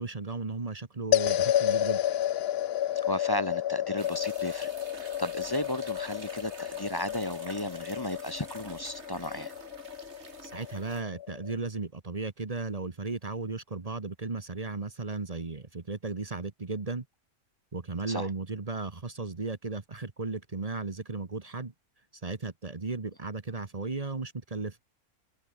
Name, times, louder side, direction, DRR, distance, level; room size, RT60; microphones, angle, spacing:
voice 1, 0.0-2.0 10.4-17.0 17.7-21.7 22.2-24.8, right 3 dB, 25° right, 1.2 m, -35 dB
sound 1, 1.1-11.6, left 11 dB, 65° left, 0.6 m, -31 dB
voice 2, 3.0-9.5 18.1-18.3, left 1 dB, 15° left, 1.2 m, -34 dB
sound 2, 4.0-11.0, right 4 dB, 50° right, 2.6 m, -48 dB
omnidirectional pair, 1.5 m